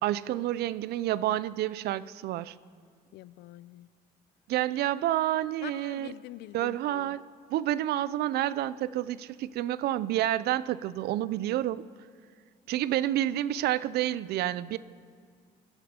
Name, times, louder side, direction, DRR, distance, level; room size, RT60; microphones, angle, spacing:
voice 1, 0.0-2.5 4.5-6.1 6.5-7.2 7.5-11.8 12.7-14.8, right 13 dB, 70° right, 17 dB, 0.5 m, -29 dB
voice 2, 3.1-3.9 5.6-7.2, left 15 dB, 80° left, 17 dB, 0.5 m, -45 dB
26.0 x 11.0 x 4.3 m, 2.1 s
cardioid pair, 110°, 17 cm